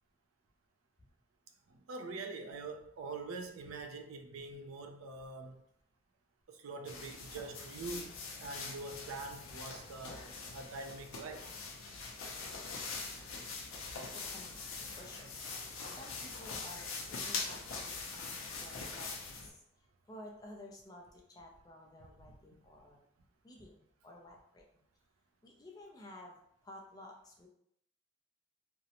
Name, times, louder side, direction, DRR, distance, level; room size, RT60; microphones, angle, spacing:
voice 1, 1.7-5.6 6.5-8.1 8.4-10.2 10.5-11.5, right 3 dB, 85° right, 0.4 m, -44 dB
sound 1, 6.8-19.5, left 4 dB, 85° left, 0.5 m, -43 dB
voice 2, 13.8-15.4 15.9-23.1 23.4-24.8 25.4-27.5, left 1 dB, 20° left, 0.3 m, -54 dB
2.5 x 2.0 x 2.8 m
head